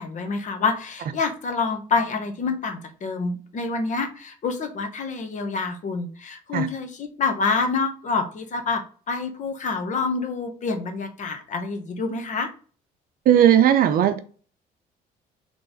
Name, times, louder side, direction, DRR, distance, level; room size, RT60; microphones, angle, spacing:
voice 1, 0.0-8.8 9.1-12.5, left 4 dB, 45° left, 1.0 m, -27 dB
voice 2, 13.3-14.2, right 10 dB, 60° right, 0.5 m, -16 dB
3.9 x 3.2 x 3.9 m
cardioid pair, 110°, 17 cm